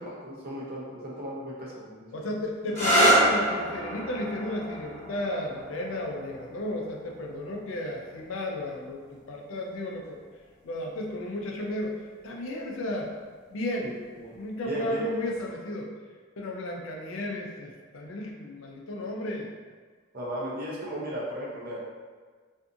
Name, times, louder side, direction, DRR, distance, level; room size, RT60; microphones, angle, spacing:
voice 1, 0.0-2.4 13.8-14.3 14.6-15.0 20.1-21.8, right 1 dB, 45° right, -5 dB, 0.6 m, -36 dB
voice 2, 2.1-10.2 10.6-13.1 13.5-14.0 14.3-15.9 16.4-19.5, left 1 dB, 85° left, 0 dB, 0.4 m, -33 dB
sound 1, 2.7-10.1 11.1-11.6 15.2-15.5, right 1 dB, 35° left, 0.9 m, -29 dB
2.5 x 2.4 x 2.6 m, 1.5 s
head